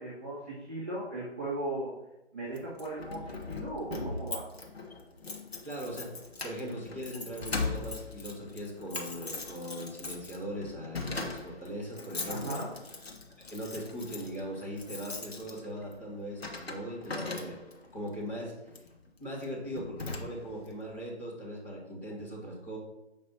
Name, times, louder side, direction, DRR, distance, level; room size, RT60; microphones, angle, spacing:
voice 1, 0.0-1.9 2.3-4.4 12.2-12.7, right 2 dB, 10° right, -11 dB, 0.7 m, -37 dB
Keys jangling, 2.6-17.9 18.7-18.9 19.4-19.5 19.8-20.7, left 3 dB, 60° left, 1.1 m, -40 dB
voice 2, 5.6-6.2 6.4-12.6 13.5-17.6 17.9-18.5 19.2-22.8, equal, 10° left, -7 dB, 1.3 m, -39 dB
7.5 x 5.2 x 2.8 m, 0.95 s
figure-of-eight pair, 150°, 35 cm